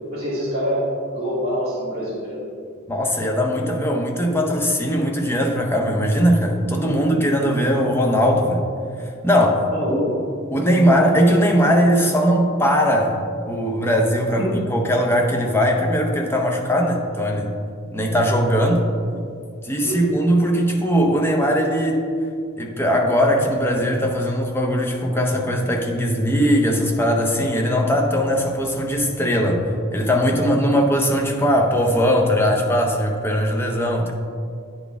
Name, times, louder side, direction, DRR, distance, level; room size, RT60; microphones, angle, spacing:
voice 1, 0.1-2.4 6.8-7.7 9.7-10.1 14.4-14.5 19.8-20.0 30.7-30.8, equal, 30° right, -11 dB, 1.6 m, -26 dB
voice 2, 2.9-8.6 9.2-10.0 10.5-13.2 13.5-17.5 17.9-18.8 19.6-22.0 22.6-34.1, equal, 10° left, 1 dB, 0.6 m, -19 dB
9.7 x 4.1 x 3.4 m, 2.3 s
head